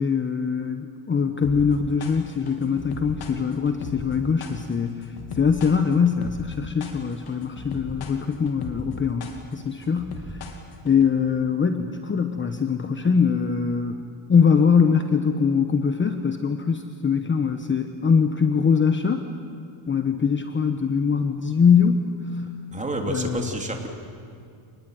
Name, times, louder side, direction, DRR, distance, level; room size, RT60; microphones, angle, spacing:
voice 1, 0.0-10.4 10.8-19.3 19.9-22.0 22.3-22.5 23.1-23.4, left 6 dB, 25° left, 7 dB, 1.1 m, -22 dB
sound 1, 1.4-11.0, left 4 dB, 50° left, 3.1 m, -38 dB
voice 2, 22.7-23.9, right 1 dB, 15° right, 2 dB, 3.2 m, -29 dB
27.0 x 20.5 x 9.3 m, 2.5 s
cardioid pair, 135°, 49 cm